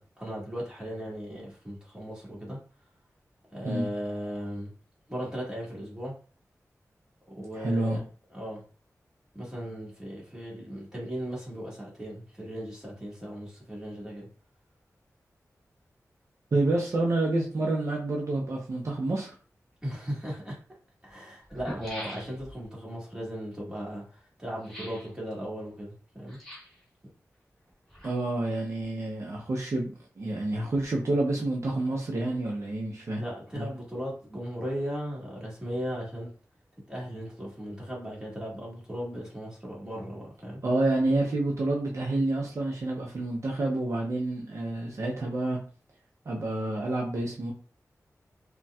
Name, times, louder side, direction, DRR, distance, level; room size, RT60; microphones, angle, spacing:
voice 1, 0.0-2.6 3.5-4.7 5.1-6.1 7.3-8.0 8.3-8.6 9.3-14.3 19.8-20.6 21.0-26.4 33.2-36.3 36.9-40.6, equal, 10° right, -5 dB, 1.5 m, -37 dB
voice 2, 7.5-8.0 16.5-19.3 28.0-33.2 33.6-33.7 40.6-45.6 46.3-47.5, right 2 dB, 60° right, -2 dB, 0.6 m, -28 dB
sound 1, 21.4-22.6 24.6-25.1 26.3-26.8 27.7-28.5 28.7-28.8, equal, 5° left, 1.2 m, -42 dB
4.0 x 2.2 x 2.3 m, 0.39 s
wide cardioid pair, 100°, 6 cm